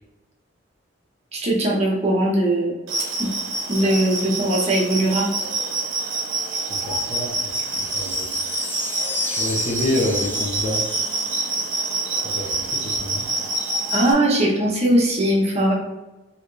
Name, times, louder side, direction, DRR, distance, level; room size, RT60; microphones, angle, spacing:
voice 1, 1.3-2.7 3.2-3.3 3.7-5.3 13.9-15.7, right 1 dB, 35° right, -3 dB, 0.8 m, -20 dB
sound 1, 2.9-14.1, right 2 dB, 85° right, 0.7 m, -26 dB
voice 2, 6.7-7.3 7.8-8.3 9.2-10.8 12.3-13.2, left 1 dB, 35° left, -2 dB, 0.7 m, -27 dB
sound 2, 7.5-12.2, left 3 dB, 10° left, 0.3 m, -34 dB
3.3 x 2.8 x 2.5 m, 1.1 s
head